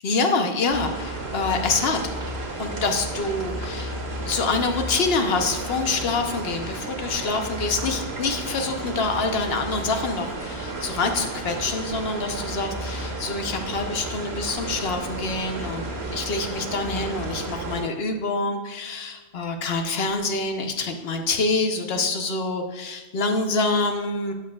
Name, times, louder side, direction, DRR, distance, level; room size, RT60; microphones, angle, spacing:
voice 1, 0.0-2.0 2.6-3.9 4.3-15.8 16.1-24.3, left 3 dB, 70° left, 5 dB, 1.1 m, -26 dB
sound 1, 0.7-17.8, right 2 dB, 85° right, 1.8 m, -32 dB
12.0 x 7.2 x 2.3 m, 1.2 s
omnidirectional pair, 1.1 m